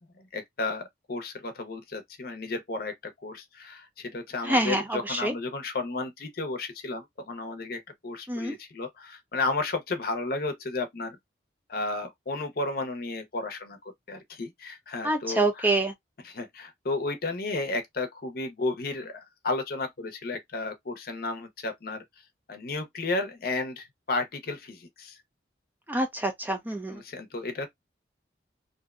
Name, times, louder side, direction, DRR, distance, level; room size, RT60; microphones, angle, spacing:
voice 1, 0.1-2.9 3.2-11.2 11.7-13.8 14.1-15.8 16.2-22.0 22.5-25.2 26.9-27.7, left 3 dB, 55° left, 0.6 m, -33 dB
voice 2, 4.5-4.8 5.1-5.3 8.3-8.6 15.0-15.9 25.9-27.0, right 2 dB, 10° right, 0.4 m, -26 dB
2.6 x 2.1 x 2.3 m
head